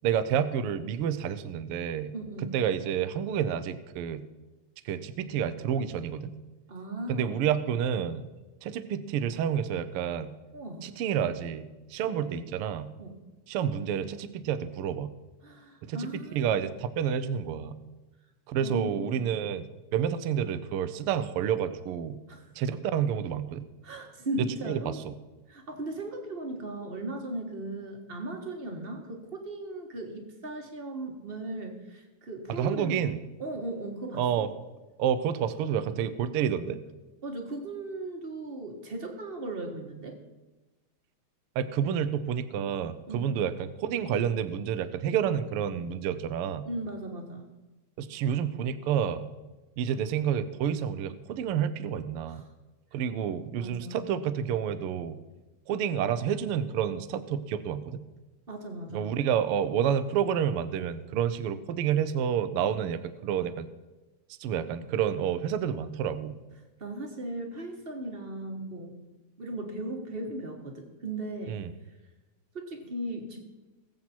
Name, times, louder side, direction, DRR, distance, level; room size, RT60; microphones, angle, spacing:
voice 1, 0.0-2.1 2.5-4.2 4.8-6.3 7.1-8.2 8.6-10.3 10.8-12.9 13.5-15.1 15.8-17.7 18.5-19.7 19.9-22.2 22.6-23.6 24.7-25.1 32.5-33.2 34.2-34.5 35.0-36.8 41.6-46.7 48.0-49.2 49.8-52.4 52.9-55.2 55.7-58.0 58.9-63.7 64.4-66.4 71.5-71.7, right 8 dB, 75° right, 11 dB, 1.3 m, -29 dB
voice 2, 2.1-2.5 6.7-7.5 10.5-10.9 12.0-12.4 13.0-13.2 15.4-16.7 18.6-19.4 22.3-22.5 23.8-25.0 25.5-33.0 33.4-34.5 37.2-40.2 43.1-43.4 46.6-47.5 52.3-52.5 53.6-54.1 58.5-59.2 66.8-68.9 69.4-71.6 72.5-73.4, right 2 dB, 30° right, 3 dB, 1.1 m, -37 dB
21.0 x 7.7 x 4.5 m, 1.1 s
omnidirectional pair, 3.4 m